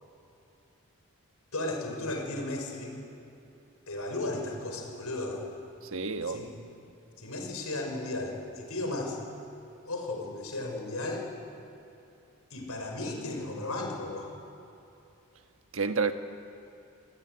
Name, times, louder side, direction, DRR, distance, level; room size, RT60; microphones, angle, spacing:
voice 1, 1.5-3.0 3.9-5.4 6.2-6.5 7.2-9.2 9.8-11.3 12.5-14.3, left 2 dB, 80° left, 2 dB, 6.0 m, -35 dB
voice 2, 5.9-6.5 15.7-16.1, right 4 dB, 65° right, 7 dB, 1.4 m, -29 dB
29.0 x 18.5 x 9.7 m, 2.8 s
head